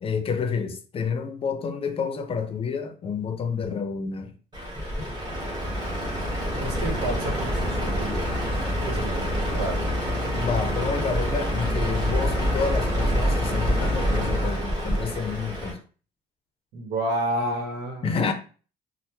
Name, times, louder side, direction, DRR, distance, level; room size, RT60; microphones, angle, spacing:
voice 1, 0.0-4.3 10.3-15.8 18.0-18.3, left 5 dB, 35° left, 0.5 m, -29 dB
Truck, 4.5-15.7, equal, 25° right, 1.3 m, -26 dB
voice 2, 6.6-8.3 8.9-9.8 16.7-18.2, right 1 dB, 85° right, 1.0 m, -30 dB
3.3 x 2.0 x 2.9 m
cardioid pair, 110°, 17 cm